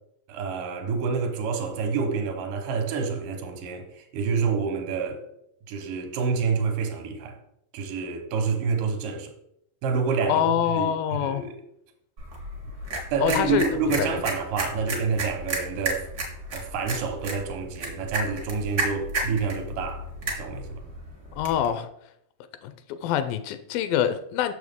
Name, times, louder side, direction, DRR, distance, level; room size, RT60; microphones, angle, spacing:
voice 1, 0.3-5.2 5.7-7.4 7.7-9.3 9.8-11.5 13.1-16.1 16.5-20.1 20.4-20.8, right 5 dB, 75° right, 2.4 m, -28 dB
voice 2, 10.2-11.5 13.2-13.7 14.0-14.2 21.3-21.9 22.6-24.5, left 10 dB, 85° left, 2.3 m, -25 dB
sound 1, 12.2-21.7, right 2 dB, 50° right, 1.1 m, -33 dB
6.6 x 6.3 x 3.5 m
omnidirectional pair, 4.1 m